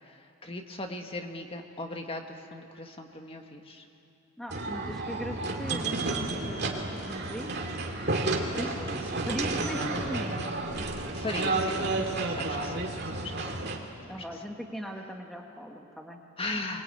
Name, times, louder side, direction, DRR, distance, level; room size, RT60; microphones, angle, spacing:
voice 1, 0.0-3.8 8.3-9.3 9.6-9.9 10.8-12.8 13.1-13.6 16.4-16.8, left 2 dB, 25° left, 4 dB, 1.6 m, -39 dB
voice 2, 4.4-6.2 6.4-7.5 8.6-8.7 9.3-10.4 14.1-16.2, equal, ahead, 1 dB, 1.4 m, -38 dB
sound 1, 4.5-13.8, right 2 dB, 50° right, 2.4 m, -31 dB
24.0 x 21.5 x 9.1 m, 2.8 s
head